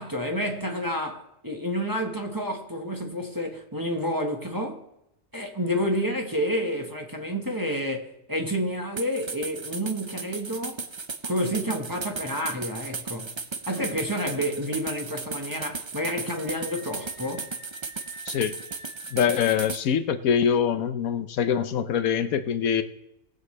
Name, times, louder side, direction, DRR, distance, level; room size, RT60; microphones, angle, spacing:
voice 1, 0.0-4.8 5.3-10.8 11.2-13.3 13.7-17.5, equal, 15° right, 1.1 m, -29 dB
sound 1, 9.0-19.8, right 4 dB, 40° right, 0.4 m, -36 dB
Screaming, 16.2-19.6, equal, 75° right, 2.7 m, -48 dB
voice 2, 19.1-22.8, left 8 dB, 80° left, 1.2 m, -24 dB
19.5 x 8.1 x 3.2 m
omnidirectional pair, 1.5 m